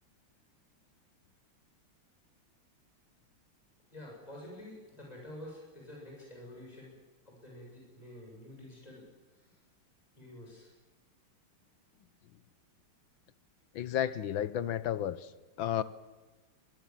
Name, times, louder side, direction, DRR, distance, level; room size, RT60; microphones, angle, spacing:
voice 1, 3.9-6.9 7.3-9.0 9.3-9.6 10.1-10.7, left 1 dB, 15° left, -2 dB, 7.4 m, -49 dB
voice 2, 13.7-15.3 15.6-15.8, left 10 dB, 70° left, 15 dB, 1.6 m, -32 dB
23.5 x 21.5 x 7.5 m, 1.3 s
omnidirectional pair, 2.3 m